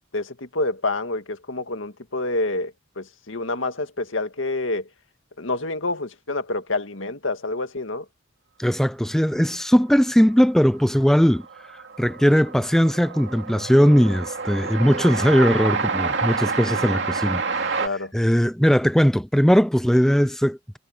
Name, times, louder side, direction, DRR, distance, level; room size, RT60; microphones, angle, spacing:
voice 1, 0.1-4.9 5.4-8.1 17.8-18.1, left 2 dB, 85° left, 1.9 m, -28 dB
voice 2, 8.6-11.4 12.0-17.8 18.1-20.8, equal, ahead, 0.6 m, -19 dB
Train, 10.5-10.6 10.7-17.9, right 4 dB, 65° right, 2.8 m, -28 dB
head